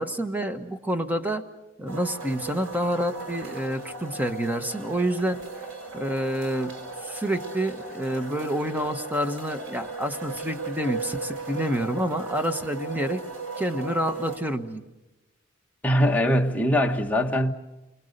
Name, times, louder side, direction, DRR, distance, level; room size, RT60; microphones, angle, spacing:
voice 1, 0.0-1.4 1.8-5.4 5.9-6.7 7.0-13.2 13.6-14.8, right 1 dB, 10° right, 1.3 m, -28 dB
sound 1, 1.9-14.4, right 4 dB, 85° right, 5.4 m, -37 dB
voice 2, 15.8-17.5, equal, 10° left, 1.4 m, -22 dB
28.5 x 24.0 x 6.7 m
head